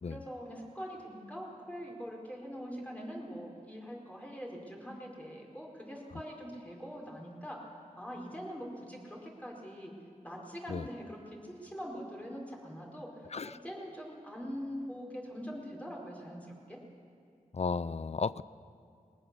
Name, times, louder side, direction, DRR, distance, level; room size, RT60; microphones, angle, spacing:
voice 1, 0.0-7.6 8.0-9.9 10.2-16.8, equal, 10° left, -2 dB, 4.9 m, -43 dB
voice 2, 17.5-18.4, left 5 dB, 50° left, 18 dB, 0.5 m, -34 dB
20.0 x 19.5 x 7.0 m, 2.3 s
wide cardioid pair, 60°, 15 cm